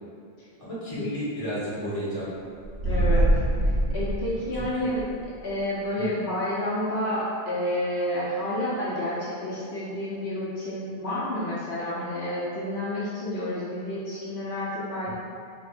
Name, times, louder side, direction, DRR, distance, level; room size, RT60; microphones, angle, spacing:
voice 1, 0.6-2.3 4.5-4.9 6.0-6.1, equal, 35° left, -10 dB, 1.4 m, -32 dB
sound 1, 2.6-5.1, right 1 dB, 85° right, 0.8 m, -24 dB
voice 2, 2.8-3.3 3.6-5.0 5.4-15.1, left 1 dB, 80° left, -8 dB, 1.2 m, -30 dB
5.1 x 3.3 x 2.5 m, 2.5 s
omnidirectional pair, 1.1 m